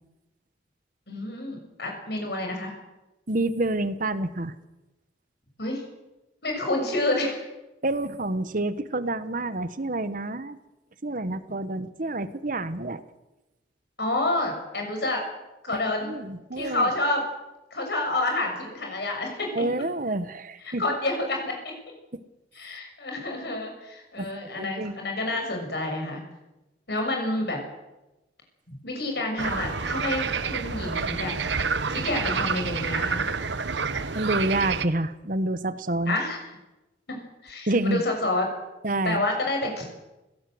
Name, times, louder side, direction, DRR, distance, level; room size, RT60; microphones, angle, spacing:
voice 1, 1.1-2.7 5.6-5.8 6.4-7.4 14.0-15.2 15.6-16.1 16.6-17.2 17.7-19.7 20.6-21.7 22.5-26.2 26.9-27.6 28.8-31.3 31.9-33.2 36.1-36.4 37.1-37.2 37.4-38.5 39.0-40.0, left 2 dB, 65° left, 2 dB, 6.8 m, -28 dB
voice 2, 3.3-4.5 7.8-10.6 11.0-13.0 15.7-16.9 19.5-20.8 24.2-24.9 34.1-36.2 37.7-38.0 38.8-39.2, right 2 dB, 50° right, 13 dB, 1.2 m, -28 dB
sound 1, 29.4-34.9, right 5 dB, 80° right, 1.2 m, -28 dB
22.5 x 17.5 x 7.9 m, 1.0 s
head